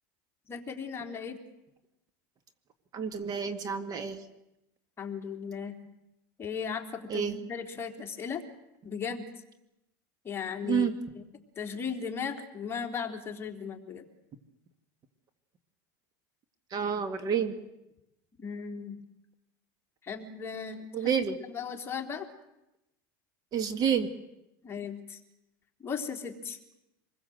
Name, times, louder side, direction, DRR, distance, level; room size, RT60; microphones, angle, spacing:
voice 1, 0.5-1.4 5.0-5.8 6.4-8.4 8.8-9.2 10.2-11.2 11.6-14.0 18.4-19.0 20.0-22.3 24.6-25.2 25.8-26.6, left 6 dB, 20° left, 2 dB, 3.6 m, -37 dB
voice 2, 2.9-4.2 7.1-7.3 10.6-10.9 16.7-17.6 20.9-21.4 23.5-24.1, right 7 dB, 40° right, 9 dB, 2.1 m, -29 dB
26.5 x 21.5 x 7.9 m, 0.89 s
supercardioid pair, 120°, 11 cm